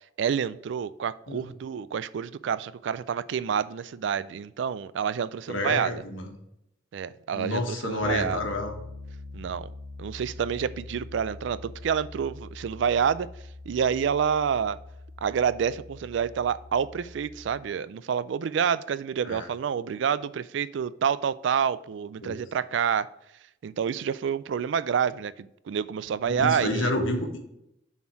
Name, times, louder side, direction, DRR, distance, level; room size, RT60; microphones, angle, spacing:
voice 1, 0.2-5.9 6.9-8.4 9.3-9.7 10.0-13.3 13.7-14.8 15.2-23.1 23.6-26.9, right 7 dB, 65° right, 16 dB, 0.3 m, -28 dB
voice 2, 5.5-6.3 7.3-8.7 19.2-19.5 22.2-22.4 26.2-27.4, left 2 dB, 80° left, 3 dB, 1.4 m, -29 dB
Piano, 8.0-17.6, left 2 dB, 85° right, 1.3 m, -44 dB
7.0 x 4.3 x 4.6 m, 0.81 s
head